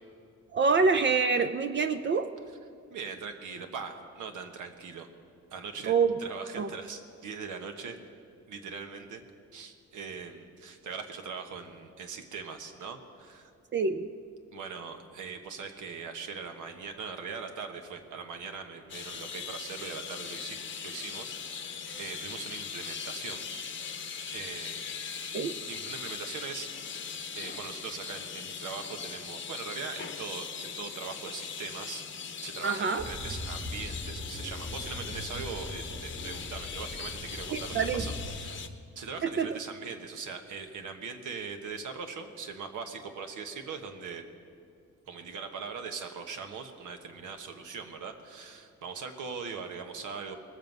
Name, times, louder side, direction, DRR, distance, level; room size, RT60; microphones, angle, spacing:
voice 1, 0.5-2.3 5.8-6.1 6.6-6.7 13.7-14.1 25.3-25.5 32.6-33.0 37.5-38.1 39.2-39.6, right 5 dB, 40° right, 9 dB, 0.4 m, -26 dB
voice 2, 2.9-5.1 5.5-5.9 6.2-8.0 8.5-9.2 9.5-13.5 14.5-20.6 20.8-23.4 24.3-26.7 27.3-32.0 32.4-38.6 38.9-44.2 45.1-50.4, right 5 dB, 80° right, 6 dB, 1.3 m, -41 dB
sound 1, 18.9-38.7, left 6 dB, 40° left, 0.8 m, -40 dB
sound 2, 33.0-38.4, left 1 dB, ahead, 1.1 m, -40 dB
20.5 x 7.7 x 5.4 m, 2.4 s
wide cardioid pair, 150°, 30 cm